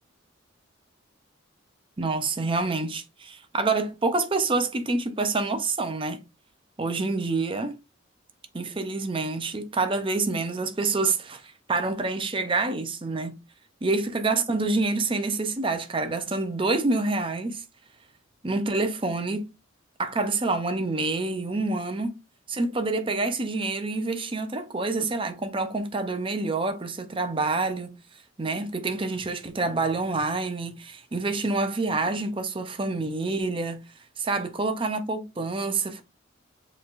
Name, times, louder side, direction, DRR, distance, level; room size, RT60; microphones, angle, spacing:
voice 1, 2.0-6.2 6.8-7.8 8.5-13.4 13.8-17.6 18.4-19.5 20.0-22.2 22.5-28.0 28.4-33.8 34.2-36.0, right 3 dB, 25° right, 0.5 m, -27 dB
6.6 x 3.2 x 2.5 m
head